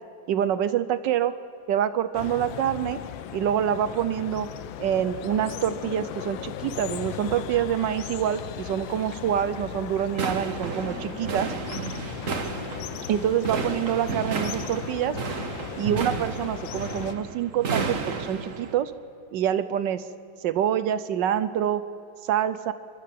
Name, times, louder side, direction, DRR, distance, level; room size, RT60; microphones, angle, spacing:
voice 1, 0.3-1.3 1.7-3.0 3.3-4.5 4.8-11.5 13.1-15.1 15.7-18.9 19.3-20.0 20.4-21.8 22.2-22.7, right 10 dB, 70° right, 13 dB, 1.3 m, -26 dB
sound 1, 2.1-17.1, left 10 dB, 80° left, 1.5 m, -37 dB
sound 2, 10.1-18.7, right 5 dB, 45° right, 1.5 m, -32 dB
28.5 x 12.0 x 7.6 m, 2.5 s
omnidirectional pair, 2.1 m